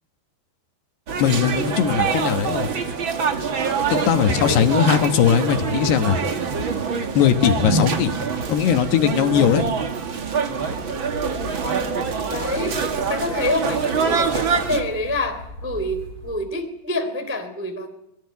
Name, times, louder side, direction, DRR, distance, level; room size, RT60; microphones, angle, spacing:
sound 1, 1.1-14.8, right 5 dB, 65° right, 1.2 m, -25 dB
voice 1, 1.2-2.7 3.9-6.2 7.2-8.1 8.5-9.6, left 9 dB, 70° left, 7 dB, 3.1 m, -19 dB
sound 2, 10.6-16.4, left 2 dB, 45° left, 3.7 m, -39 dB
voice 2, 12.3-17.9, left 1 dB, 5° right, 5 dB, 2.2 m, -27 dB
24.5 x 21.0 x 9.5 m, 0.83 s
omnidirectional pair, 5.3 m